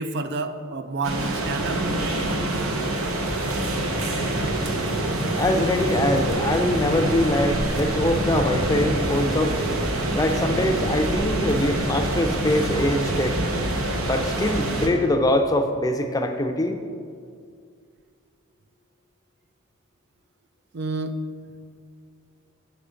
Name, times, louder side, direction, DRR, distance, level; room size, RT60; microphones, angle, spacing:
voice 1, 0.0-1.8 20.7-21.2, right 3 dB, 50° right, 10 dB, 0.5 m, -29 dB
sound 1, 1.0-14.9, right 1 dB, 80° right, 1.0 m, -25 dB
voice 2, 5.3-9.6 10.1-13.4 14.0-16.8, left 1 dB, 15° left, 5 dB, 0.5 m, -23 dB
7.6 x 6.9 x 5.0 m, 2.2 s
head